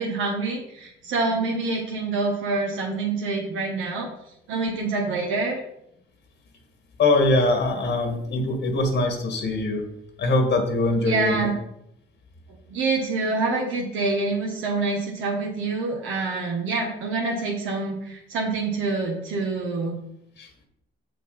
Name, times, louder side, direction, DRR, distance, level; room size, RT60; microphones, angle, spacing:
voice 1, 0.0-4.1 4.5-5.6 11.0-11.5 12.7-20.0, right 3 dB, 85° right, -1 dB, 1.4 m, -26 dB
voice 2, 7.0-9.8 10.2-11.5 20.4-20.5, left 2 dB, 65° left, 4 dB, 1.6 m, -22 dB
6.1 x 5.8 x 5.6 m, 0.78 s
cardioid pair, 90°, 20 cm